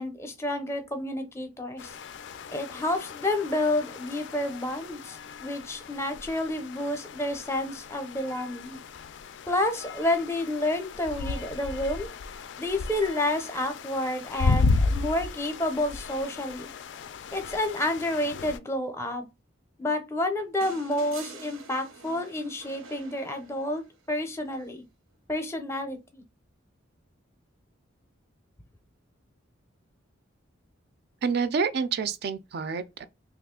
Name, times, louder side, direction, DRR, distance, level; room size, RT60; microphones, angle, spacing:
voice 1, 0.0-2.0 2.5-8.8 9.5-12.1 12.6-16.7 17.3-19.2 19.8-24.8 25.3-26.2, left 1 dB, 15° left, 0.5 m, -30 dB
sound 1, 1.8-18.6, left 3 dB, 60° left, 0.3 m, -34 dB
sound 2, 20.6-23.9 25.5-25.6, right 4 dB, 90° right, 0.7 m, -46 dB
voice 2, 31.2-33.1, right 5 dB, 50° right, 0.4 m, -28 dB
3.0 x 2.4 x 3.6 m
head